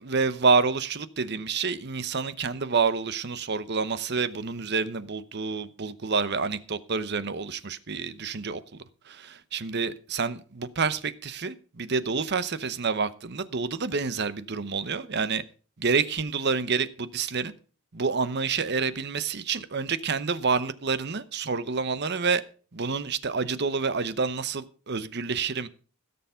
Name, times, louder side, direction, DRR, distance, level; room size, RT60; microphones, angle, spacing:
voice 1, 0.0-15.4 15.8-17.5 17.9-22.4 22.7-25.7, right 5 dB, 50° right, 0.8 m, -28 dB
16.5 x 6.9 x 5.6 m
head